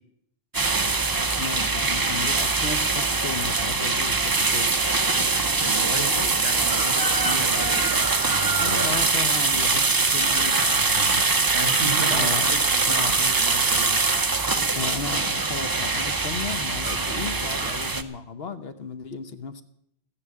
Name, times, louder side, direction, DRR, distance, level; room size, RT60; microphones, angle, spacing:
sound 1, 0.5-18.0, right 3 dB, 25° right, 0.6 m, -23 dB
voice 1, 1.1-4.7 8.6-11.4 12.1-12.5 12.9-13.2 14.8-19.6, left 5 dB, 60° left, 10 dB, 1.1 m, -35 dB
voice 2, 5.6-8.8 11.5-14.4, right 3 dB, 55° right, 6 dB, 2.4 m, -34 dB
13.5 x 10.0 x 8.5 m, 0.75 s
omnidirectional pair, 1.2 m